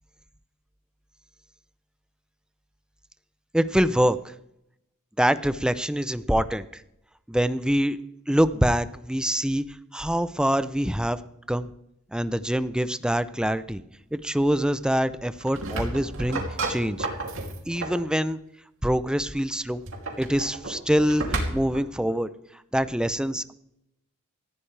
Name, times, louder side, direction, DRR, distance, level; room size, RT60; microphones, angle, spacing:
voice 1, 3.5-4.3 5.2-6.8 7.3-8.0 8.3-9.6 9.9-11.2 11.5-11.7 12.1-13.8 14.1-16.4 16.7-17.1 17.7-18.4 18.8-19.8 20.2-22.3 22.7-23.5, equal, 5° right, 13 dB, 0.6 m, -24 dB
sound 1, 15.3-18.1 19.7-21.9, right 2 dB, 65° right, 2.9 m, -32 dB
19.0 x 14.5 x 3.4 m, 0.80 s
head